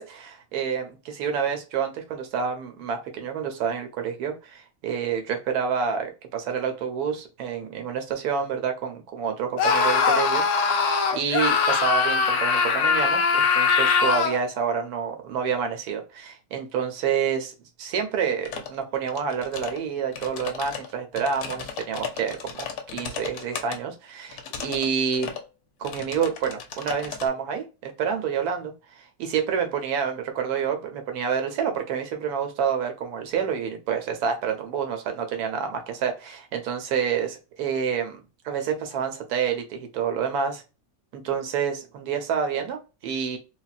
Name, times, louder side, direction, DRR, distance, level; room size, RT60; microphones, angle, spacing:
voice 1, 0.0-10.4 10.7-10.8 11.1-17.5 17.8-22.7 22.9-25.3 25.8-28.7 29.2-38.2 38.4-40.6 41.1-43.4, right 7 dB, 65° right, 5 dB, 1.1 m, -28 dB
Screaming, 9.6-14.4, left 5 dB, 85° left, 0.6 m, -21 dB
sound 1, 18.5-18.8 19.1-19.8 20.1-23.8 24.3-24.9 25.1-25.4 25.8-27.3, left 7 dB, 70° left, 1.0 m, -36 dB
4.0 x 2.1 x 2.4 m, 0.30 s
omnidirectional pair, 1.9 m